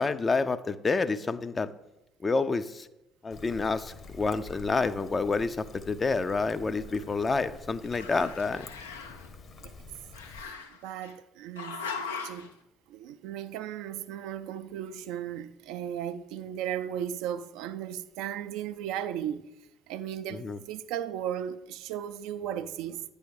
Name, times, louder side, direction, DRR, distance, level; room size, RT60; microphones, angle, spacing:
voice 1, 0.0-1.7 2.2-2.9 3.2-8.7 20.3-20.6, left 4 dB, 30° left, 0.4 m, -28 dB
Trickle dribble, 3.3-10.4, left 3 dB, 50° left, 1.1 m, -48 dB
Growling, 6.4-7.6 7.8-9.3 10.1-11.1 11.6-12.5, left 5 dB, 85° left, 0.5 m, -40 dB
voice 2, 10.8-12.5 12.9-19.5 19.9-23.0, right 10 dB, 70° right, 0.3 m, -36 dB
9.5 x 3.5 x 6.3 m
hypercardioid pair, 55°, 0 cm